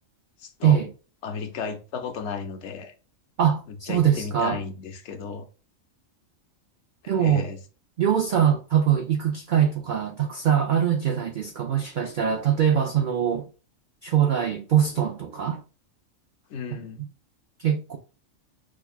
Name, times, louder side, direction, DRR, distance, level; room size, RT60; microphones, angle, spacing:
voice 1, 0.4-0.8 1.2-2.9 3.7-5.5 7.2-7.6 16.5-17.0, left 5 dB, 65° left, 0.8 m, -34 dB
voice 2, 3.4-4.6 7.1-7.5 8.0-13.5 14.0-15.6 16.7-17.1 17.6-18.0, right 9 dB, 80° right, 0.4 m, -23 dB
6.1 x 2.2 x 2.3 m
omnidirectional pair, 1.4 m